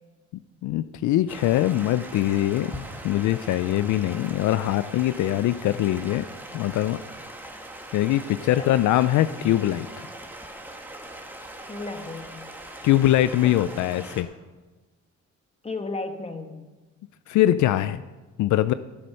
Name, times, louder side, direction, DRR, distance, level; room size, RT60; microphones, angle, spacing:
voice 1, 0.6-6.3 6.5-7.0 7.9-9.9 12.8-14.3 17.3-18.0 18.4-18.7, left 13 dB, 75° left, 14 dB, 0.4 m, -22 dB
Stream, 1.3-14.2, right 1 dB, 5° right, 1.7 m, -41 dB
voice 2, 11.7-12.4 13.4-13.7 15.6-16.7, left 3 dB, 20° left, 7 dB, 1.3 m, -34 dB
13.5 x 7.7 x 5.6 m, 1.2 s
cardioid pair, 90°, 30 cm